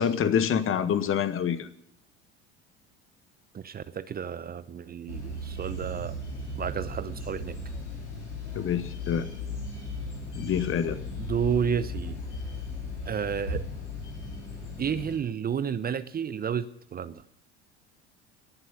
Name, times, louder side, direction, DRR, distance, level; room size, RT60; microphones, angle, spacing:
voice 1, 0.0-1.7 8.5-9.3 10.4-11.0, left 8 dB, 40° left, 11 dB, 1.5 m, -26 dB
voice 2, 3.5-6.2 6.6-7.6 10.9-12.2 13.0-13.6 14.8-17.2, right 7 dB, 25° right, 14 dB, 0.8 m, -31 dB
sound 1, 5.1-15.2, left 2 dB, 85° left, 3.9 m, -36 dB
19.0 x 7.8 x 9.9 m, 0.73 s
hypercardioid pair, 70°, 34 cm